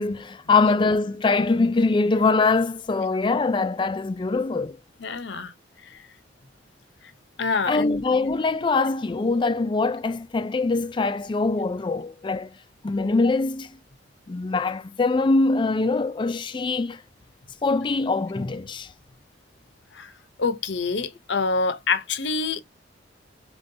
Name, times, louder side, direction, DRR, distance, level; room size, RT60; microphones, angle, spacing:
voice 1, 0.0-4.8 7.7-12.5 12.8-13.7 14.3-17.0 17.6-18.9, left 3 dB, 25° left, 0.3 m, -23 dB
voice 2, 5.0-5.5 5.8-6.1 7.4-8.0 19.9-20.1 20.4-22.6, left 4 dB, 65° left, 0.7 m, -26 dB
5.4 x 3.1 x 2.6 m
head